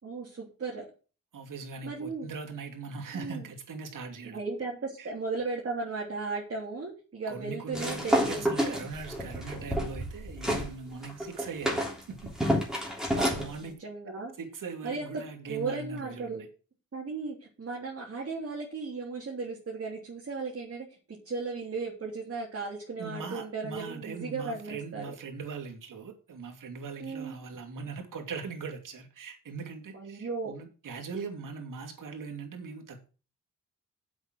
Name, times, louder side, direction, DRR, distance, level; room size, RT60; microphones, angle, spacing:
voice 1, 0.0-0.8 1.8-2.3 3.1-3.5 4.3-8.8 13.0-13.4 13.6-14.3 14.8-15.2 15.5-16.4 16.9-20.9 21.2-25.1 27.0-27.3 29.9-30.5, right 4 dB, 45° right, -4 dB, 3.3 m, -36 dB
voice 2, 1.3-4.4 5.0-5.1 7.3-12.3 13.3-13.8 14.4-16.4 23.0-33.1, right 4 dB, 75° right, 3 dB, 2.7 m, -40 dB
sound 1, 7.7-10.7 11.0-13.5, equal, ahead, 3.5 m, -29 dB
7.9 x 6.3 x 7.6 m, 0.35 s
wide cardioid pair, 120°, 32 cm